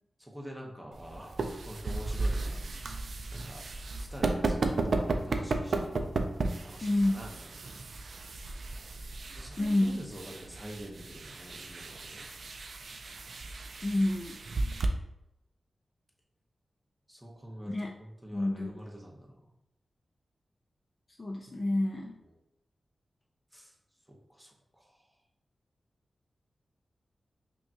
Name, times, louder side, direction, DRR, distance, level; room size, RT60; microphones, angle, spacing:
voice 1, 0.2-2.7 3.3-6.2 6.6-7.4 9.3-12.3 17.1-19.5 22.2-22.3 23.5-23.7 24.1-25.1, equal, 5° right, -2 dB, 0.8 m, -46 dB
sound 1, 0.9-14.9, right 3 dB, 65° right, 0.4 m, -34 dB
voice 2, 6.8-7.3 9.6-10.0 13.8-14.4 17.6-17.9 18.3-18.7 21.2-22.1, left 1 dB, 30° left, 0 dB, 0.4 m, -28 dB
5.5 x 2.3 x 2.7 m, 0.86 s
wide cardioid pair, 105°, 0 cm